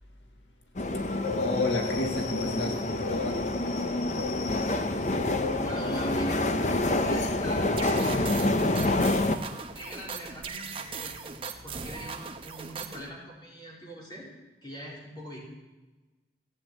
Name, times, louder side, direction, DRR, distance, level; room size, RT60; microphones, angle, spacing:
sound 1, 0.8-9.4, left 2 dB, 40° left, 0.8 m, -27 dB
voice 1, 1.3-3.3 10.9-11.1 11.6-11.9, left 2 dB, 85° left, 2 dB, 1.7 m, -32 dB
sound 2, 5.6-12.9, equal, 55° left, 4.1 m, -52 dB
voice 2, 5.6-6.7 7.0-8.5 9.7-11.1 11.6-14.3 14.6-15.4, equal, 25° left, -3 dB, 4.0 m, -43 dB
sound 3, 7.8-13.1, right 5 dB, 30° right, 0.9 m, -39 dB
16.0 x 8.5 x 8.4 m, 1.2 s
head